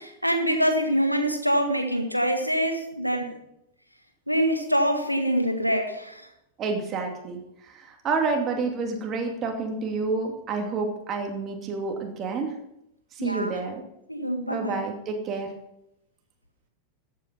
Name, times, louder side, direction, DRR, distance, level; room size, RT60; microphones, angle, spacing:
voice 1, 0.0-3.4 4.3-6.2 13.2-13.6 14.1-14.9, equal, 90° left, 6 dB, 1.7 m, -25 dB
voice 2, 6.6-7.4 7.7-12.6 13.2-13.8 14.5-15.5, right 4 dB, 30° right, 3 dB, 2.6 m, -29 dB
14.0 x 8.8 x 5.5 m, 0.81 s
figure-of-eight pair, 90°, 0 cm